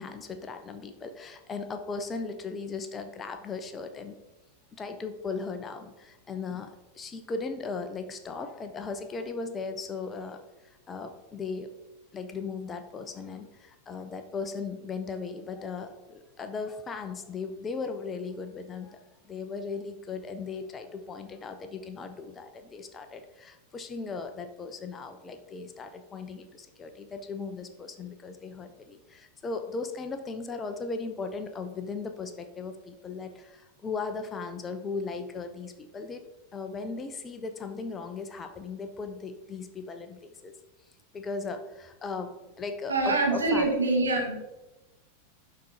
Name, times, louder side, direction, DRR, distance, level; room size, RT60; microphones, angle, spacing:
voice 1, 0.0-4.2 4.7-11.7 12.1-36.2 36.5-40.6 41.1-43.7, left 4 dB, 20° left, 7 dB, 0.9 m, -37 dB
voice 2, 42.9-44.6, right 3 dB, 70° right, 0 dB, 2.1 m, -25 dB
11.5 x 4.3 x 4.3 m, 1.0 s
figure-of-eight pair, 90°, 0 cm